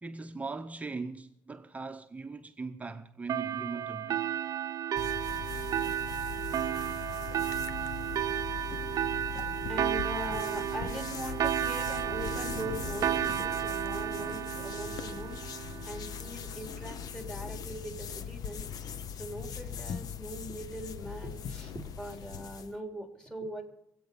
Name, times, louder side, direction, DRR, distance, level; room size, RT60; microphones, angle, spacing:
voice 1, 0.0-4.3, right 3 dB, 20° right, 0.8 m, -40 dB
sound 1, 3.3-16.4, right 11 dB, 60° right, 0.7 m, -33 dB
sound 2, 5.0-22.8, left 7 dB, 60° left, 0.9 m, -40 dB
sound 3, 7.2-13.3, left 1 dB, 45° left, 2.9 m, -50 dB
voice 2, 9.7-23.6, equal, 10° left, 3.2 m, -41 dB
25.5 x 8.6 x 5.3 m
cardioid pair, 120°, 7 cm